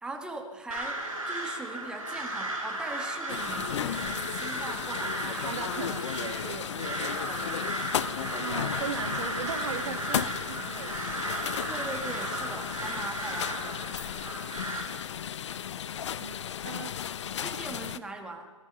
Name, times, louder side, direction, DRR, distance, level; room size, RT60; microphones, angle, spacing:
voice 1, 0.0-5.9 7.1-7.5 8.0-8.5 11.7-13.8 17.3-18.5, right 2 dB, 5° right, 4 dB, 1.7 m, -41 dB
Crow, 0.7-14.9, right 1 dB, 85° right, 5.6 m, -35 dB
sound 1, 3.3-18.0, left 9 dB, 55° left, 0.8 m, -35 dB
voice 2, 5.4-7.4 7.6-7.8 8.4-11.2 16.2-16.4 16.6-16.9, right 8 dB, 55° right, 8 dB, 1.6 m, -39 dB
25.5 x 19.0 x 5.6 m, 1.5 s
figure-of-eight pair, 125°, 17 cm